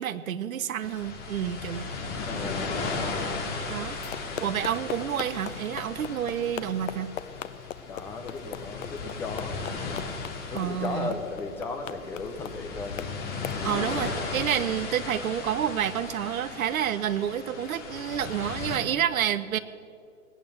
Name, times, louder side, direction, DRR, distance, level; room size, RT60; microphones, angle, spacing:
voice 1, 0.0-1.9 3.7-4.0 4.4-7.1 10.5-11.1 13.6-19.6, right 10 dB, 70° right, 14 dB, 1.0 m, -29 dB
sound 1, 0.8-18.8, left 4 dB, 20° left, 2.1 m, -36 dB
voice 2, 2.3-3.1 4.3-4.6 7.9-10.1 10.5-13.1 14.2-14.3, left 3 dB, 5° left, 4 dB, 0.5 m, -36 dB
sound 2, 3.9-13.6, left 10 dB, 60° left, 0.8 m, -40 dB
19.5 x 9.0 x 8.0 m, 2.3 s
hypercardioid pair, 140°, 44 cm